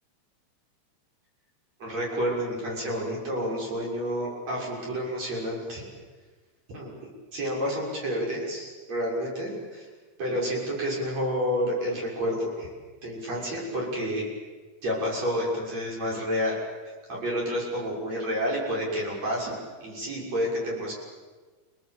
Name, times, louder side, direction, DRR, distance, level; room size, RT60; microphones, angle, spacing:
voice 1, 1.8-5.9 6.7-6.9 7.3-9.9 10.2-12.7 13.0-14.3 14.8-16.6 17.1-19.5 19.8-20.9, equal, 50° right, -3 dB, 7.6 m, -29 dB
29.0 x 19.0 x 8.7 m, 1.4 s
omnidirectional pair, 3.8 m